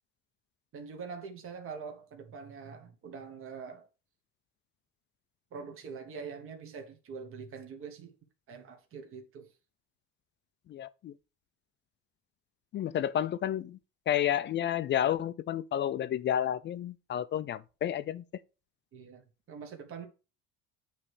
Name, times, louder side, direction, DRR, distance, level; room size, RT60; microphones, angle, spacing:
voice 1, 0.7-3.9 5.5-8.1 8.5-9.5 18.9-20.1, right 5 dB, 40° right, 1.4 m, -44 dB
voice 2, 10.7-11.1 12.7-13.8 14.1-18.2, left 10 dB, 35° left, 0.4 m, -31 dB
8.6 x 3.3 x 4.8 m
cardioid pair, 130°, 33 cm